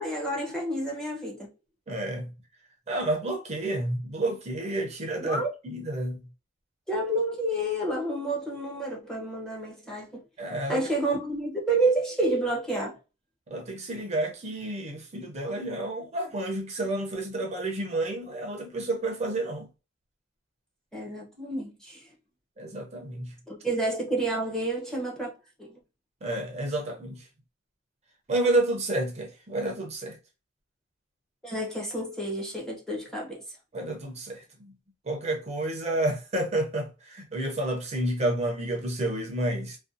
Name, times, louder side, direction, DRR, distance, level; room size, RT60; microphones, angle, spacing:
voice 1, 0.0-1.5 5.2-5.5 6.9-10.2 10.7-13.0 20.9-22.0 23.5-25.3 25.6-25.8 31.4-33.4, right 2 dB, 5° left, 0.7 m, -29 dB
voice 2, 1.9-2.3 2.9-6.2 10.4-10.8 13.5-19.7 22.6-23.3 26.2-27.2 28.3-30.2 33.7-34.7 35.1-39.8, right 1 dB, 35° right, 0.5 m, -30 dB
2.4 x 2.2 x 2.5 m
head